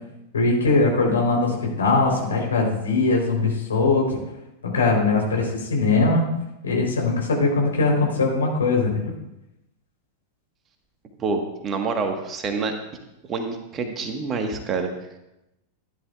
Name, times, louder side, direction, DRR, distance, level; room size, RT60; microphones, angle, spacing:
voice 1, 0.3-4.2 4.6-6.2 6.6-9.0, left 3 dB, 70° left, -1 dB, 3.9 m, -21 dB
voice 2, 11.2-12.8 13.3-14.9, right 4 dB, 25° right, 4 dB, 1.5 m, -27 dB
16.0 x 10.5 x 2.5 m, 0.92 s
figure-of-eight pair, 90°, 0 cm